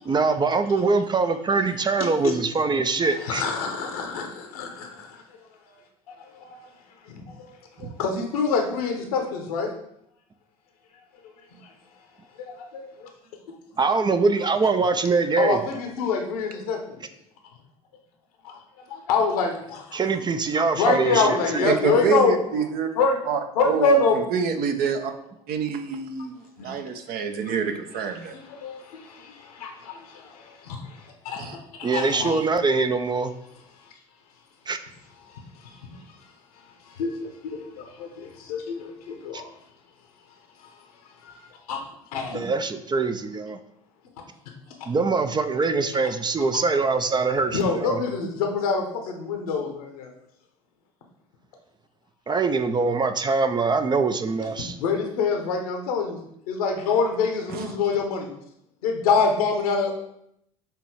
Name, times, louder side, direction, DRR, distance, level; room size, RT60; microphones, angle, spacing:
voice 1, 0.1-3.4 13.8-15.6 19.9-21.2 21.5-21.7 31.8-33.3 34.7-34.8 39.3-39.4 42.3-43.6 44.9-48.0 52.3-54.7, right 4 dB, 20° right, 9 dB, 0.5 m, -23 dB
voice 2, 3.1-5.2 5.7-5.8 6.1-6.7 7.0-9.7 11.6-11.7 12.4-13.1 15.4-17.1 18.9-20.0 20.8-22.6 22.9-23.2 23.5-24.3 26.2-26.3 26.6-26.7 28.2-31.5 31.8-32.4 33.8-33.9 35.2-36.2 36.8-39.5 40.6-40.7 41.2-41.4 41.7-41.8 42.1-42.5 47.5-50.1 54.6-56.2 56.5-58.3 58.8-59.9, left 4 dB, 70° left, 3 dB, 1.1 m, -26 dB
voice 3, 21.6-22.9 23.3-23.4 23.6-25.1 25.5-26.4 26.6-28.4 31.4-31.6 57.5-57.7, right 6 dB, 50° right, 6 dB, 0.8 m, -27 dB
6.7 x 3.1 x 4.6 m, 0.76 s
figure-of-eight pair, 65°, 19 cm